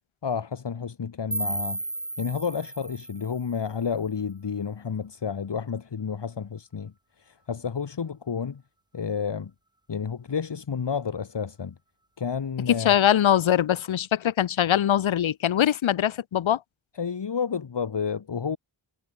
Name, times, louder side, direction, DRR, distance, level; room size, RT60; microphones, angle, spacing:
voice 1, 0.2-1.8 2.2-8.6 8.9-9.5 9.9-11.8 12.2-13.0 17.0-18.6, left 6 dB, 65° left, 1.2 m, -30 dB
sound 1, 1.3-4.3, right 2 dB, 10° right, 0.5 m, -34 dB
voice 2, 12.7-16.6, left 10 dB, 80° left, 0.6 m, -22 dB
wide cardioid pair, 70°, 46 cm